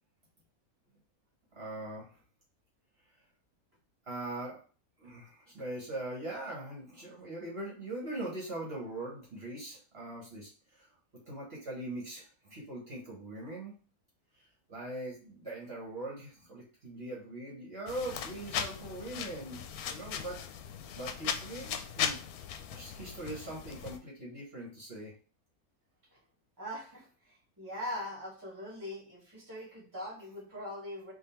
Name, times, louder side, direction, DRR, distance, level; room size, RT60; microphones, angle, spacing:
voice 1, 1.5-2.1 4.1-4.6 5.0-10.9 11.3-13.7 14.7-20.4 20.9-22.2 22.7-25.1, right 1 dB, 45° right, -5 dB, 1.7 m, -41 dB
sound 1, 17.9-24.0, left 8 dB, 85° left, 1.1 m, -38 dB
voice 2, 26.6-31.1, left 1 dB, 15° right, -5 dB, 1.6 m, -42 dB
3.7 x 3.1 x 4.4 m, 0.38 s
omnidirectional pair, 1.5 m